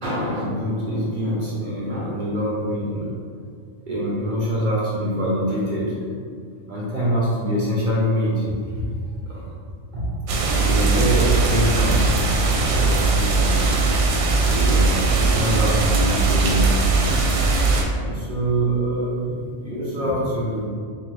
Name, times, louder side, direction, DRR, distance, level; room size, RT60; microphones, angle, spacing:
voice 1, 0.0-3.1 3.9-6.0 6.7-8.8 9.3-9.5 9.9-10.1 10.5-12.1 12.7-13.8 14.4-16.9 17.9-19.3 19.6-20.6, equal, 45° right, -6 dB, 0.7 m, -25 dB
sound 1, 10.3-17.8, right 3 dB, 80° right, 1.0 m, -19 dB
3.5 x 3.0 x 3.2 m, 2.1 s
omnidirectional pair, 1.4 m